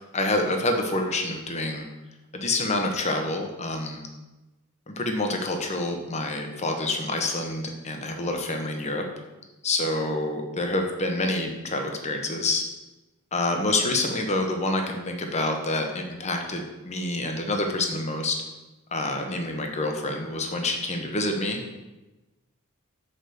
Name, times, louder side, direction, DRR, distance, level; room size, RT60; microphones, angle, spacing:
voice 1, 0.1-1.9 2.3-4.0 4.9-9.1 9.6-12.6 13.3-18.4 18.9-21.8, left 2 dB, 30° left, 3 dB, 1.0 m, -27 dB
6.8 x 4.9 x 6.5 m, 1.1 s
head